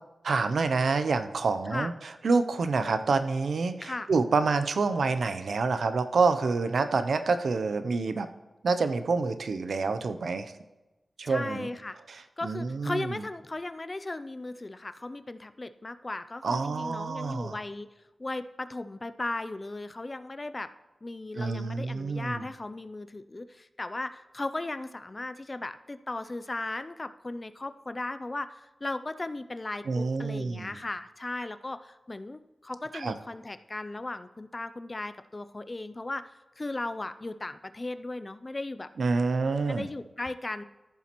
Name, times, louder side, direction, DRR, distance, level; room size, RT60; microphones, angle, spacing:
voice 1, 0.2-1.9 2.2-8.3 8.6-10.5 11.2-11.7 12.4-13.1 16.4-17.6 21.4-22.4 29.9-30.7 32.9-33.1 39.0-39.9, right 4 dB, 75° right, 10 dB, 0.5 m, -27 dB
voice 2, 11.2-12.0 12.4-17.9 18.2-20.7 21.0-38.9 39.7-40.6, left 2 dB, 25° left, 11 dB, 0.3 m, -36 dB
14.0 x 7.2 x 3.0 m, 1.1 s
wide cardioid pair, 140°, 0 cm